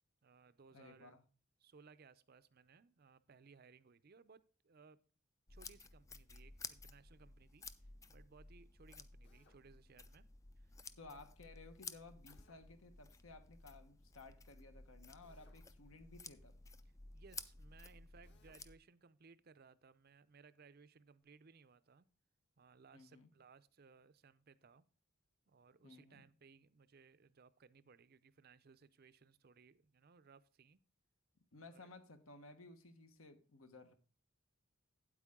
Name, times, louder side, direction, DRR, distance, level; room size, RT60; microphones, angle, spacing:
voice 1, 0.2-1.2 1.6-5.0 5.5-10.3 10.6-11.2 17.1-22.1 22.6-24.8 25.5-30.8 31.5-31.9, right 5 dB, 45° right, 15 dB, 0.5 m, -64 dB
voice 2, 0.7-1.2 11.0-16.6 22.9-23.3 25.8-26.3 31.5-33.9, left 3 dB, 75° left, 8 dB, 1.3 m, -57 dB
sound 1, 5.5-18.7, left 4 dB, 15° left, 0.3 m, -55 dB
Drill, 9.2-9.6 12.3-12.6 15.2-15.7 18.2-18.6, left 3 dB, 55° left, 1.6 m, -71 dB
8.9 x 8.4 x 3.6 m, 0.38 s
head